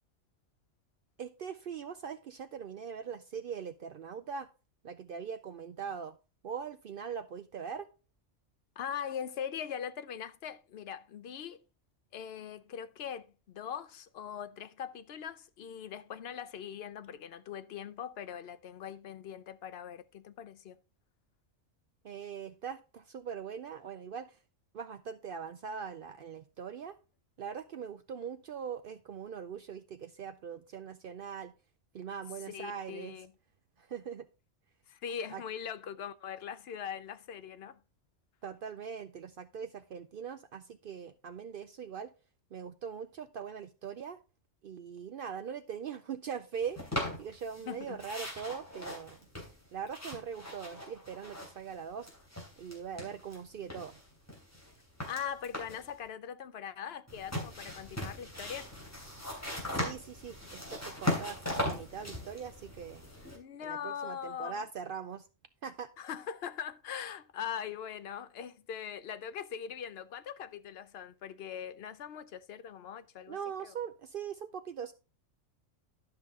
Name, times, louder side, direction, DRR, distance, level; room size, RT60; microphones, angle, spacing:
voice 1, 1.2-4.5 4.8-6.2 6.4-7.9 22.0-24.4 24.7-27.0 27.4-31.5 31.9-33.2 33.8-34.3 35.3-35.4 38.4-42.1 42.5-44.2 44.6-49.2 49.7-52.1 52.6-54.0 59.7-63.1 63.6-65.3 65.6-65.9 73.3-74.9, right 7 dB, 60° right, 0.6 m, -41 dB
voice 2, 8.8-11.6 12.1-20.8 32.5-33.3 34.9-37.8 47.7-48.0 55.1-58.7 63.3-64.5 66.0-73.4 73.6-73.7, left 8 dB, 60° left, 0.8 m, -41 dB
sound 1, 46.8-47.7 48.0-51.7 52.0-53.4 53.7-55.9 57.1-63.4, left 1 dB, 10° left, 2.9 m, -39 dB
11.5 x 5.7 x 3.6 m
omnidirectional pair, 1.3 m